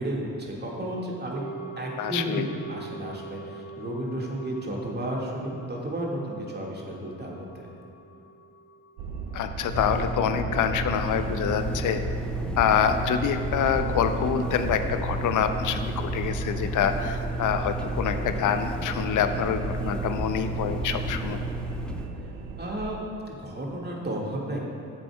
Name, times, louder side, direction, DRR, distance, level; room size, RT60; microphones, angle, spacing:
voice 1, 0.0-1.4 1.8-7.7 12.2-12.5 22.6-23.0 23.3-24.6, right 1 dB, 25° right, -2 dB, 1.9 m, -33 dB
sound 1, 1.3-11.6 11.9-12.0, right 3 dB, 40° right, 1.5 m, -44 dB
voice 2, 2.0-2.5 9.3-12.0 12.6-21.4, left 8 dB, 50° left, 8 dB, 0.7 m, -26 dB
sound 2, 9.0-23.0, right 4 dB, 75° right, 0.6 m, -36 dB
sound 3, 9.7-22.1, right 2 dB, ahead, 0.6 m, -32 dB
12.5 x 7.5 x 2.3 m, 2.6 s
hypercardioid pair, 45°, 40 cm